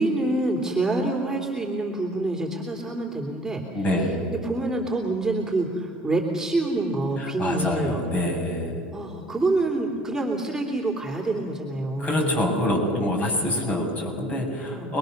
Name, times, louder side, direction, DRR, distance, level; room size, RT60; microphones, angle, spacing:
voice 1, 0.0-8.0 8.9-12.5 14.7-15.0, right 2 dB, 10° right, -2 dB, 3.4 m, -27 dB
voice 2, 3.7-4.3 7.2-8.8 12.0-15.0, left 1 dB, 30° left, 2 dB, 7.2 m, -26 dB
28.5 x 22.0 x 6.8 m, 2.5 s
supercardioid pair, 110°, 5 cm